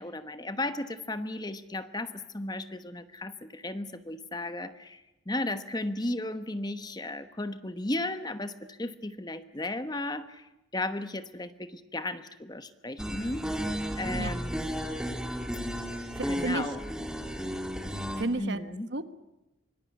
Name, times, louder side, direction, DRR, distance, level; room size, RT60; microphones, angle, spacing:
voice 1, 0.0-10.5 10.7-13.6 13.9-14.9 16.3-16.8 18.4-18.9, left 2 dB, 20° left, 11 dB, 1.1 m, -35 dB
sound 1, 13.0-18.2, equal, 5° right, 2.3 m, -33 dB
voice 2, 16.2-16.6 18.2-19.1, right 2 dB, 60° right, 12 dB, 1.2 m, -32 dB
25.5 x 20.5 x 9.5 m, 0.96 s
head